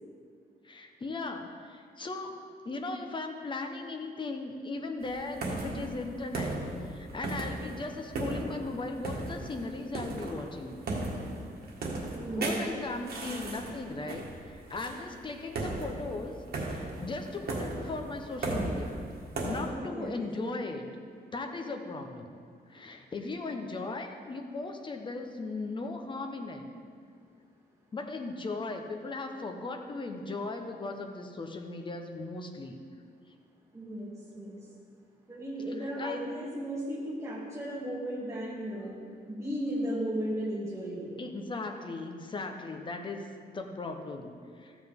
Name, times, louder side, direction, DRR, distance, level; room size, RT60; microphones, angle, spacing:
voice 1, 0.6-2.3 2.6-10.8 12.3-16.4 16.6-18.9 19.4-20.8 21.3-22.4 22.7-26.7 27.9-32.7 35.8-36.2 41.2-43.3 43.5-44.8, left 3 dB, 30° left, 4 dB, 0.9 m, -38 dB
sound 1, 5.0-19.7, right 2 dB, 70° right, 1.7 m, -37 dB
voice 2, 12.1-12.6 13.2-13.8 19.7-20.8 33.7-34.6 35.3-39.0 39.3-41.1, equal, 20° right, -6 dB, 2.6 m, -36 dB
14.0 x 7.9 x 3.7 m, 2.1 s
wide cardioid pair, 145°, 17 cm